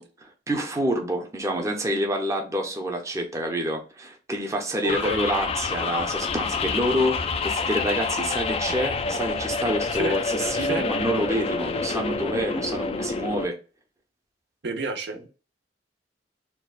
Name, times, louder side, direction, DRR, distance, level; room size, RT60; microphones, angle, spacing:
voice 1, 0.0-13.6, equal, 15° right, 0.7 m, -27 dB
voice 2, 4.8-5.2 10.0-10.2 10.6-10.9 14.6-15.3, right 3 dB, 65° right, 0.7 m, -29 dB
sound 1, 4.9-13.5, left 4 dB, 35° left, 0.3 m, -28 dB
4.3 x 2.2 x 2.4 m
head